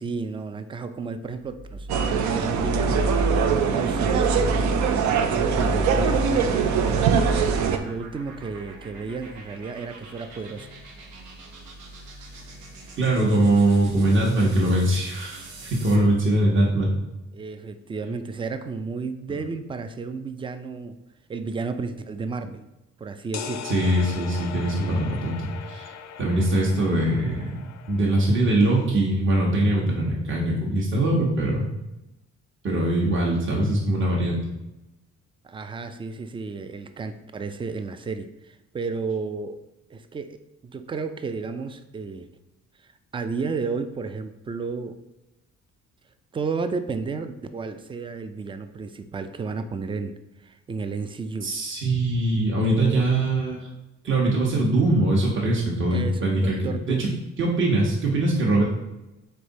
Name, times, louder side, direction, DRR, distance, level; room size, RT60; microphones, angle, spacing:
voice 1, 0.0-3.2 3.5-4.8 5.2-6.6 7.8-10.7 17.3-21.0 21.3-22.7 23.0-23.7 35.4-39.6 39.9-42.3 43.1-45.0 46.3-51.5 52.6-53.1 55.9-57.1, right 4 dB, 20° right, 10 dB, 0.3 m, -32 dB
sound 1, 1.4-16.1, right 1 dB, 85° right, 0.9 m, -44 dB
sound 2, 1.9-7.8, right 5 dB, 70° right, 0.5 m, -22 dB
voice 2, 13.0-16.9 19.3-19.4 23.6-25.4 25.7-25.9 26.2-27.6 27.9-31.7 32.6-34.4 51.4-53.7 54.0-57.1 57.4-58.6, right 1 dB, 40° right, -3 dB, 1.0 m, -22 dB
sound 3, 23.3-28.9, left 8 dB, 60° left, 0.5 m, -39 dB
3.6 x 3.3 x 4.0 m, 0.98 s
cardioid pair, 90°, 30 cm